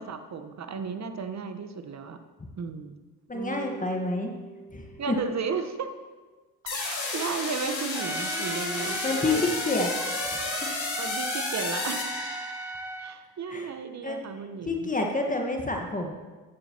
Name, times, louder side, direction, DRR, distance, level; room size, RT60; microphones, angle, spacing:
voice 1, 0.0-2.2 2.6-3.0 5.0-5.9 6.6-9.0 9.2-9.4 11.0-12.1 13.0-15.0, right 5 dB, 35° right, 8 dB, 1.3 m, -34 dB
voice 2, 3.3-4.3 4.7-5.1 8.7-9.9 10.3-10.9 13.5-13.7 14.0-14.2 14.6-16.1, left 2 dB, 15° left, 2 dB, 1.6 m, -29 dB
sound 1, 3.3-5.9, right 5 dB, 60° right, 2.8 m, -44 dB
sound 2, 6.7-12.8, left 3 dB, 85° left, 1.8 m, -32 dB
Trumpet, 7.9-13.2, right 2 dB, 5° right, 0.6 m, -36 dB
15.5 x 11.5 x 3.0 m, 1.3 s
figure-of-eight pair, 55°, 50 cm